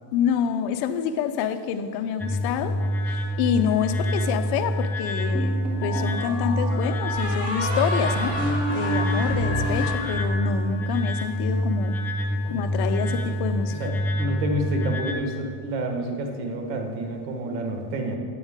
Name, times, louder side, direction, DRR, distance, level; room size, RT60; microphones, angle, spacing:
voice 1, 0.1-2.7 3.0-8.4 8.7-12.0 12.5-13.9, left 8 dB, 50° left, 8 dB, 0.6 m, -27 dB
sound 1, 2.2-15.1, equal, 5° left, 0.5 m, -26 dB
sound 2, 5.3-6.2 7.2-10.6, equal, 15° right, 2.2 m, -29 dB
sound 3, 5.8-10.9, left 3 dB, 25° left, 1.9 m, -35 dB
voice 2, 13.6-18.2, right 1 dB, 90° right, 3 dB, 1.6 m, -29 dB
9.1 x 7.8 x 3.6 m, 2.2 s
cardioid pair, 135°, 49 cm